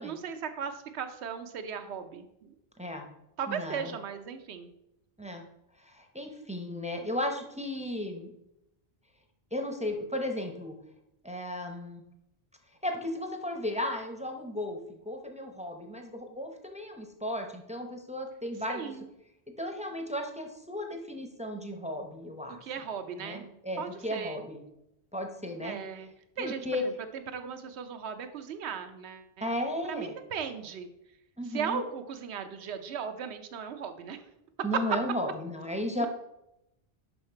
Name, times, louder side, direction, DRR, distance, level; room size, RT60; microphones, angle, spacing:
voice 1, 0.0-2.5 3.4-4.7 18.7-19.1 22.6-23.5 23.8-24.4 25.6-26.1 26.4-29.5 29.9-30.9 31.4-34.2 36.0-36.1, right 7 dB, 90° right, 8 dB, 0.9 m, -37 dB
voice 2, 3.5-3.9 5.2-5.4 5.8-8.3 9.5-10.8 11.2-12.0 12.8-18.9 19.6-22.6 23.2-24.6 25.1-25.8 26.4-26.8 29.4-30.1 31.4-31.8 34.6-36.1, left 1 dB, 10° right, 4 dB, 0.5 m, -35 dB
5.8 x 5.6 x 4.4 m, 0.85 s
omnidirectional pair, 1.1 m